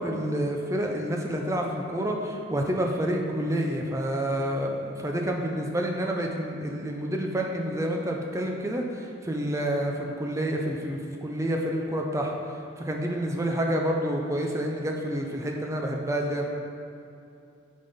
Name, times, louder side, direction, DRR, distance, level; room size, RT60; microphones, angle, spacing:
voice 1, 0.0-12.3 12.8-16.5, right 1 dB, 15° right, 1 dB, 0.5 m, -28 dB
6.8 x 5.3 x 4.1 m, 2.6 s
head